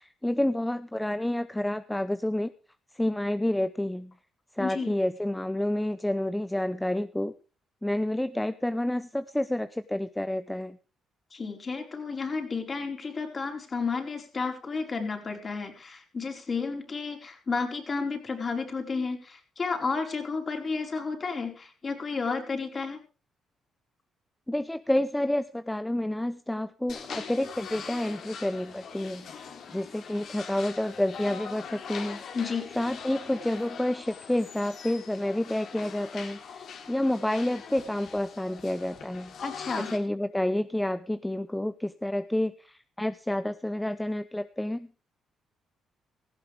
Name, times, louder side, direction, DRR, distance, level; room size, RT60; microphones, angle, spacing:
voice 1, 0.0-2.5 2.9-4.1 4.5-7.3 7.8-10.8 24.5-29.3 29.7-32.2 32.8-39.3 39.8-44.9, left 1 dB, 5° left, 12 dB, 0.7 m, -29 dB
voice 2, 4.6-4.9 11.3-23.0 32.3-32.7 39.4-39.9, left 4 dB, 35° left, 4 dB, 4.4 m, -32 dB
sound 1, 26.9-40.0, left 6 dB, 65° left, 3.4 m, -42 dB
17.5 x 15.0 x 3.4 m, 0.35 s
cardioid pair, 90°, 0 cm